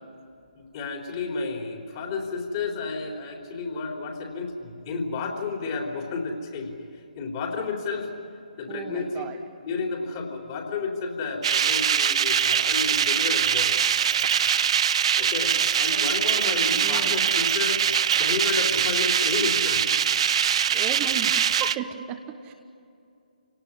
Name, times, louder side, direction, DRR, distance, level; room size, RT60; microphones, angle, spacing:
voice 1, 0.5-8.1 8.6-9.3 9.6-13.8 15.2-17.8 18.1-19.9, left 4 dB, 30° left, 1 dB, 3.7 m, -31 dB
voice 2, 8.7-9.4 16.7-17.2 20.7-22.5, right 8 dB, 20° right, 3 dB, 1.2 m, -35 dB
sound 1, 11.4-21.8, right 8 dB, 40° right, 0.6 m, -23 dB
29.0 x 18.5 x 9.8 m, 2.6 s
figure-of-eight pair, 140°, 5 cm